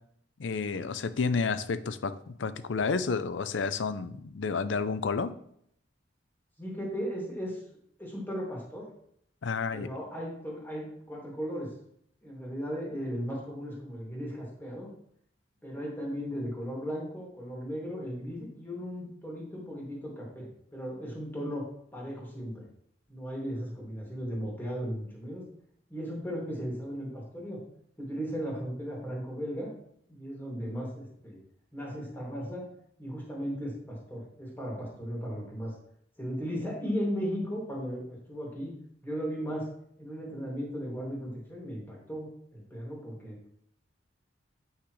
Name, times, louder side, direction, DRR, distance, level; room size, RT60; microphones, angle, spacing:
voice 1, 0.4-5.3 9.4-9.9, left 4 dB, 85° left, 13 dB, 0.5 m, -30 dB
voice 2, 6.6-7.6 8.0-8.9 9.7-11.7 12.2-14.9 15.6-22.7 23.1-25.4 25.9-27.6 28.0-29.7 30.1-31.4 31.7-32.6 33.0-35.7 36.2-38.7 39.0-39.7 40.0-43.4, equal, 10° left, -3 dB, 2.4 m, -36 dB
8.2 x 5.9 x 3.2 m, 0.68 s
head